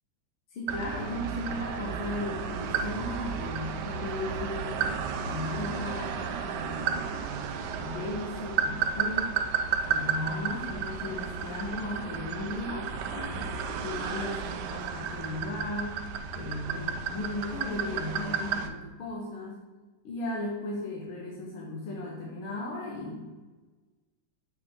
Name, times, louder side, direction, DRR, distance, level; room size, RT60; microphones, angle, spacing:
voice 1, 0.5-7.1 7.8-9.3 9.9-16.0 16.3-19.6 20.0-23.3, left 2 dB, 90° left, -2 dB, 1.9 m, -36 dB
sound 1, 0.7-18.7, right 6 dB, 75° right, 1.1 m, -33 dB
7.1 x 4.5 x 3.6 m, 1.2 s
omnidirectional pair, 2.2 m